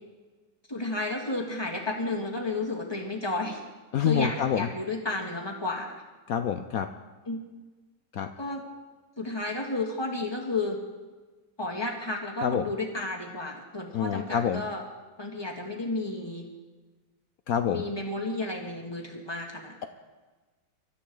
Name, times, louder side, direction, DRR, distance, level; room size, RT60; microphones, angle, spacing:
voice 1, 0.7-3.6 4.0-6.0 7.3-7.4 8.4-8.6 9.2-10.8 11.6-14.8 15.2-16.5 17.6-19.9, left 2 dB, 15° left, -1 dB, 2.2 m, -32 dB
voice 2, 3.9-4.7 6.3-6.9 8.1-8.3 12.4-12.6 13.9-14.6 17.5-17.8, left 8 dB, 65° left, 8 dB, 0.9 m, -27 dB
25.0 x 13.0 x 3.9 m, 1.3 s
omnidirectional pair, 2.0 m